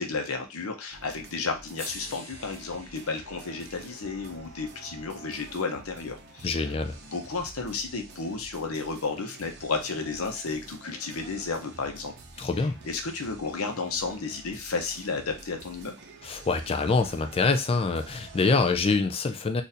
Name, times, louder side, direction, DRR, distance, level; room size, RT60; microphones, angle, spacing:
voice 1, 0.0-6.6 7.1-12.1 12.8-16.0, left 4 dB, 85° left, 4 dB, 0.8 m, -32 dB
sound 1, 0.9-19.0, right 2 dB, 55° right, 0.6 m, -49 dB
sound 2, 1.7-5.9 7.3-7.4, left 1 dB, 10° left, 1.3 m, -47 dB
voice 2, 6.4-7.0 12.4-12.8 16.2-19.6, left 3 dB, 25° left, 7 dB, 0.4 m, -25 dB
4.1 x 2.6 x 2.6 m, 0.28 s
head